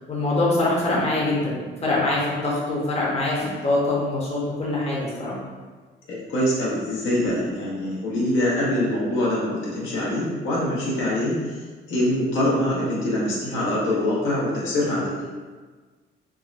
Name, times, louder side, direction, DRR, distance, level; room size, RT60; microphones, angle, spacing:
voice 1, 0.1-5.4, left 2 dB, 30° left, -5 dB, 0.8 m, -24 dB
sound 1, 3.4-4.2 7.3-8.2, equal, 50° right, 1.0 m, -39 dB
voice 2, 6.1-11.3 11.9-15.1, left 1 dB, 80° left, -6 dB, 0.9 m, -24 dB
3.5 x 2.1 x 2.5 m, 1.4 s
cardioid pair, 90°, 20 cm